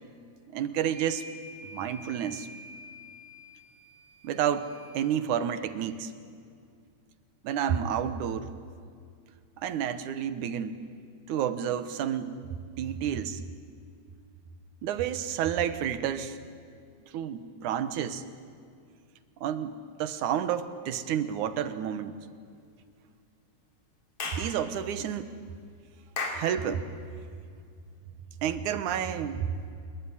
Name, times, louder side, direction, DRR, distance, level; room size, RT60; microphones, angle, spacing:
voice 1, 0.5-1.3 1.7-2.5 4.2-6.1 7.4-8.5 9.6-10.8 11.3-12.4 12.8-13.4 14.8-16.4 17.1-18.2 19.4-22.1 24.3-25.3 26.3-26.9 28.4-29.5, right 9 dB, 75° right, 12 dB, 2.6 m, -30 dB
sound 1, 0.8-5.1, left 1 dB, 85° left, 9.6 m, -48 dB
Clapping / Chirp tweet, 24.2-24.5 26.2-26.5, left 3 dB, 50° left, 3.9 m, -33 dB
27.0 x 22.5 x 9.8 m, 2.3 s
omnidirectional pair, 3.6 m